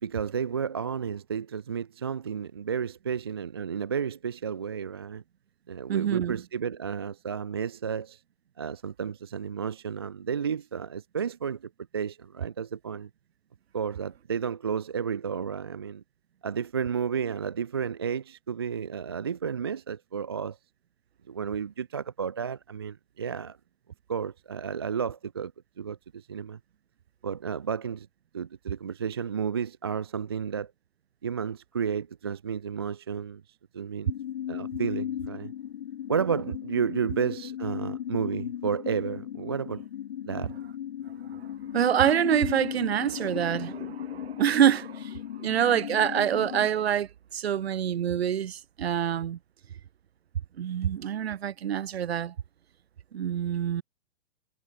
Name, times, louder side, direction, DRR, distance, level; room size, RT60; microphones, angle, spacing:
voice 1, 0.0-5.2 5.7-8.2 8.6-13.1 13.7-16.0 16.4-20.6 21.3-23.6 24.1-25.5 25.8-26.6 27.2-28.1 28.3-30.7 31.2-34.1 34.5-35.5 36.1-39.9 40.2-40.5, right 7 dB, 20° right, 0.6 m, -32 dB
voice 2, 5.9-6.4 41.3-41.5 41.7-49.4 50.6-52.3 53.1-53.8, right 9 dB, 45° right, 5.1 m, -26 dB
sound 1, 34.1-46.7, left 10 dB, 40° left, 1.8 m, -36 dB
hypercardioid pair, 175°, 41 cm